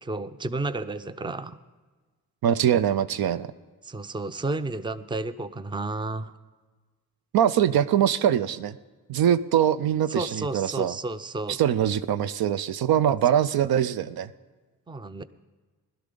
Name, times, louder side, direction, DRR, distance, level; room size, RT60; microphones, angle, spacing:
voice 1, 0.0-1.6 3.8-6.3 10.1-11.6 14.9-15.2, right 2 dB, 15° right, 13 dB, 0.5 m, -32 dB
voice 2, 2.4-3.5 7.3-8.8 9.1-10.9 11.5-14.3, right 10 dB, 70° right, 14 dB, 0.5 m, -23 dB
17.0 x 12.0 x 3.8 m, 1.3 s
cardioid pair, 60°, 38 cm